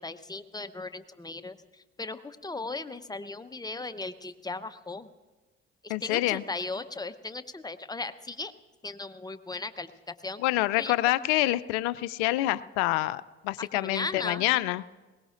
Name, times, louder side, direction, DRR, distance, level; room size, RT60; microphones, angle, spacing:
voice 1, 0.0-5.1 5.8-8.5 8.8-10.4 10.8-10.9 13.6-14.4, left 3 dB, 10° left, 10 dB, 0.8 m, -37 dB
voice 2, 5.9-6.4 10.4-14.8, left 17 dB, 75° left, 16 dB, 0.5 m, -27 dB
21.5 x 18.5 x 2.5 m, 1.2 s
hypercardioid pair, 55°, 33 cm